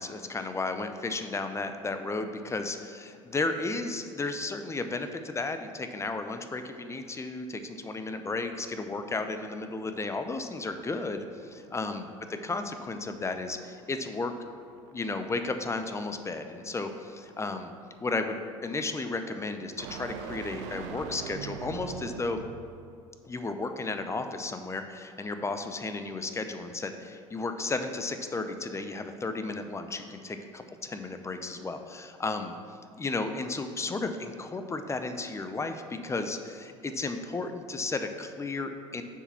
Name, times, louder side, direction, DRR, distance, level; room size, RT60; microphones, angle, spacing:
voice 1, 0.0-14.3 14.9-17.7 18.0-22.4 23.2-32.5 33.0-39.0, left 3 dB, 15° left, 7 dB, 0.6 m, -34 dB
sound 1, 8.2-22.8, right 6 dB, 70° right, 0.6 m, -46 dB
6.8 x 4.7 x 5.8 m, 2.4 s
hypercardioid pair, 75°, 16 cm